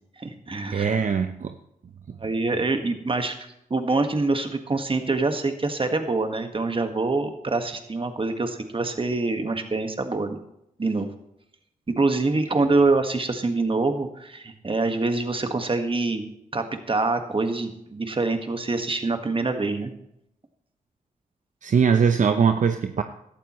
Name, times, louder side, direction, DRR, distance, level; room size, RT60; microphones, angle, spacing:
voice 1, 0.2-1.0 2.2-3.3 3.7-10.4 10.8-11.1 11.9-16.2 16.5-19.9, right 3 dB, 35° right, 6 dB, 1.6 m, -25 dB
voice 2, 0.7-1.5 21.6-23.0, right 6 dB, 60° right, 7 dB, 0.7 m, -21 dB
16.0 x 12.0 x 3.1 m, 0.80 s
cardioid pair, 60°, 15 cm